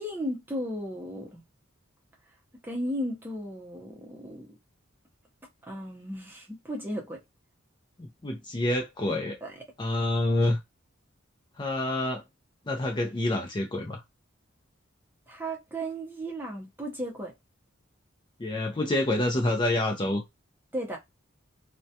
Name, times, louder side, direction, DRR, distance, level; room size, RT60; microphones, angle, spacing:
voice 1, 0.0-1.4 2.6-4.5 5.7-7.2 9.4-9.5 15.3-17.3 20.7-21.0, equal, 10° right, 0.7 m, -35 dB
voice 2, 8.0-9.4 9.8-10.6 11.6-12.2 12.7-14.0 18.4-20.2, left 1 dB, 25° left, 0.5 m, -27 dB
2.3 x 2.1 x 2.7 m
head